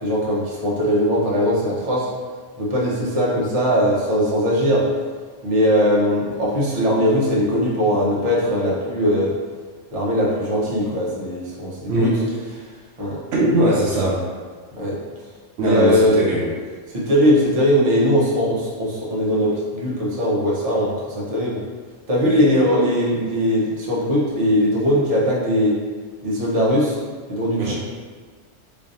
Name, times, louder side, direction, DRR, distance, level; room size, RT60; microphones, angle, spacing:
voice 1, 0.0-2.1 2.6-4.8 5.4-9.3 9.9-12.1 13.0-13.2 14.7-15.0 15.6-16.3 16.9-21.6 22.1-25.8 26.2-27.0 27.3-27.7, equal, 35° right, -6 dB, 0.8 m, -20 dB
voice 2, 13.3-14.2 15.6-16.5 27.6-27.7, right 1 dB, 70° right, -5 dB, 0.9 m, -20 dB
3.8 x 3.3 x 2.6 m, 1.6 s
omnidirectional pair, 1.3 m